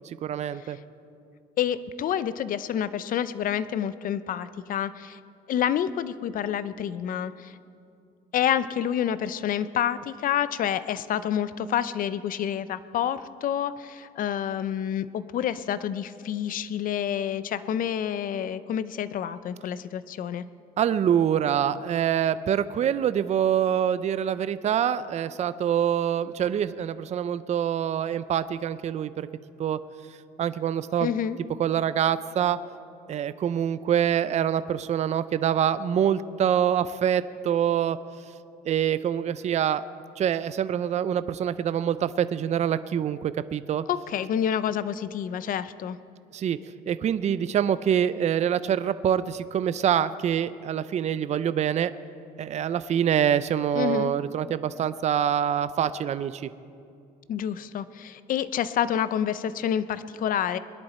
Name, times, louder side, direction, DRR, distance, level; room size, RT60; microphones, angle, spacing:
voice 1, 0.2-0.8 20.8-29.3 29.6-29.8 30.4-31.1 31.6-32.6 33.1-38.0 38.7-39.8 40.2-43.8 46.3-46.6 46.9-51.9 52.4-56.5, right 9 dB, 40° right, 14 dB, 0.5 m, -25 dB
voice 2, 1.6-5.2 5.5-7.6 8.3-20.4 31.0-31.4 43.9-46.0 53.7-54.1 57.3-60.6, left 9 dB, 55° left, 14 dB, 0.6 m, -28 dB
21.5 x 11.0 x 4.3 m, 2.4 s
cardioid pair, 110°, 17 cm